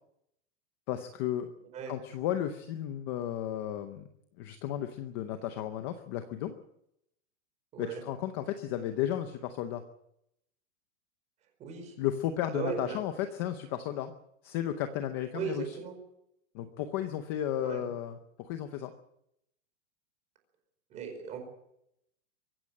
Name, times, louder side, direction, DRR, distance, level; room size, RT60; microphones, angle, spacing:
voice 1, 0.9-1.5 1.9-4.1 4.4-6.6 7.8-9.8 12.0-14.1 14.4-15.8 16.5-18.9, left 11 dB, 20° left, 8 dB, 0.7 m, -34 dB
voice 2, 11.6-11.9 12.5-13.0 15.3-15.9 17.6-17.8 20.9-21.4, right 7 dB, 20° right, 5 dB, 4.9 m, -37 dB
24.0 x 15.0 x 7.5 m, 0.80 s
supercardioid pair, 175°, 38 cm